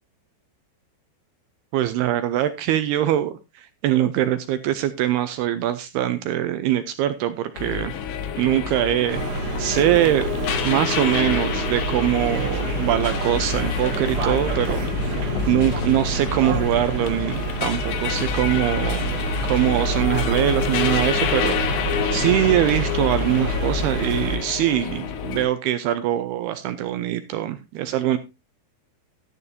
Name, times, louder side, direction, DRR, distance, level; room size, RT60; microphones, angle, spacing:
voice 1, 1.7-8.0 8.4-10.3 10.6-14.9 15.2-19.1 19.4-21.6 22.1-28.2, right 12 dB, 80° right, 10 dB, 2.4 m, -23 dB
sound 1, 7.6-25.5, left 8 dB, 75° left, 3.4 m, -28 dB
sound 2, 9.1-24.4, right 3 dB, 60° right, 3.3 m, -28 dB
12.0 x 11.0 x 2.7 m, 0.24 s
omnidirectional pair, 5.3 m